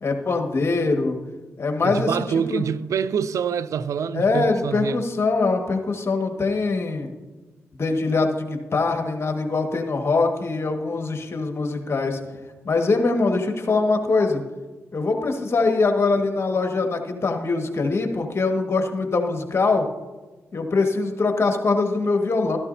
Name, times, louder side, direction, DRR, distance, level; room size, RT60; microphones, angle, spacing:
voice 1, 0.0-1.2 1.6-2.6 4.1-7.1 7.8-12.4 12.7-14.4 14.9-19.9 20.5-22.6, left 3 dB, 50° left, 1.7 m, -23 dB
voice 2, 1.8-5.0, right 7 dB, 70° right, 0.4 m, -26 dB
13.0 x 13.0 x 2.7 m
supercardioid pair, 45°, 6 cm